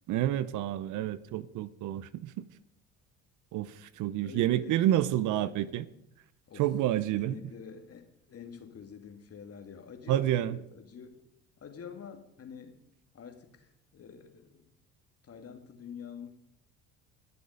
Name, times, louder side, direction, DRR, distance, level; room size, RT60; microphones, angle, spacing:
voice 1, 0.1-2.4 3.5-5.9 6.6-7.4 10.1-10.6, right 13 dB, 60° right, 0.8 m, -29 dB
voice 2, 4.2-5.7 6.5-6.6 7.1-11.2 11.6-12.8 13.1-14.7 15.2-16.3, left 7 dB, 45° left, 2.5 m, -47 dB
20.5 x 7.0 x 5.2 m
hypercardioid pair, 65°, 35 cm